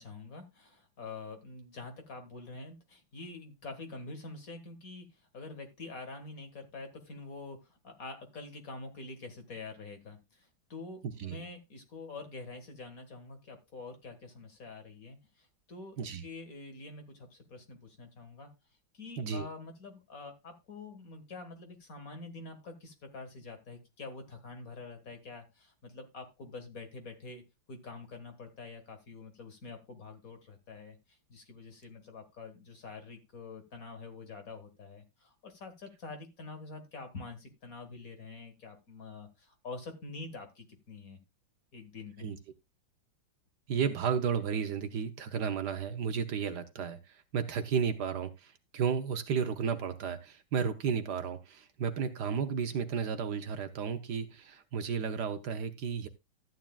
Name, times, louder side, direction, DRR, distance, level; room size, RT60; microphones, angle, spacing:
voice 1, 0.0-18.5 18.9-27.4 27.7-41.2 41.7-42.3, left 3 dB, 45° left, 2.1 m, -46 dB
voice 2, 43.7-56.1, right 6 dB, 65° right, 1.3 m, -33 dB
13.5 x 9.4 x 2.4 m
omnidirectional pair, 2.1 m